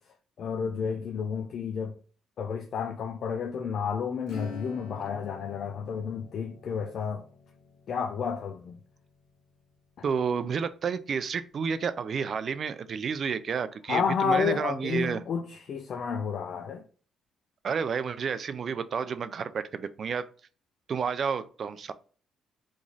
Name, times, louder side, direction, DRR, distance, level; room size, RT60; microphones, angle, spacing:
voice 1, 0.4-1.9 2.4-7.3 7.9-8.8 13.9-16.8, left 6 dB, 60° left, 0.4 m, -31 dB
Acoustic guitar / Strum, 4.2-10.5, left 4 dB, 85° left, 1.4 m, -48 dB
voice 2, 10.0-15.2 17.6-20.3 20.9-21.9, right 6 dB, 50° right, 0.3 m, -30 dB
3.0 x 2.5 x 3.8 m
cardioid pair, 90°, 0 cm